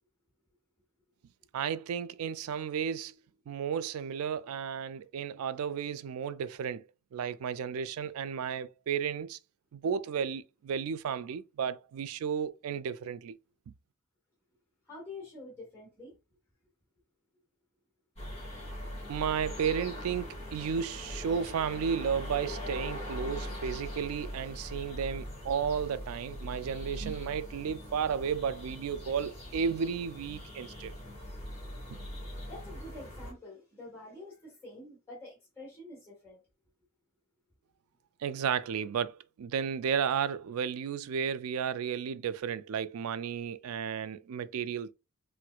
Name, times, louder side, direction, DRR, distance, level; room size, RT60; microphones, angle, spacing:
voice 1, 1.5-3.1 3.5-6.8 7.1-9.4 9.7-13.4 19.1-31.0 31.9-32.0 38.2-44.9, right 7 dB, 85° right, 0.3 m, -33 dB
voice 2, 14.8-16.2 30.3-30.4 31.2-31.3 32.5-36.4, left 2 dB, 15° left, 1.3 m, -47 dB
sound 1, 18.2-33.3, equal, 30° left, 1.6 m, -41 dB
4.3 x 2.1 x 2.3 m
head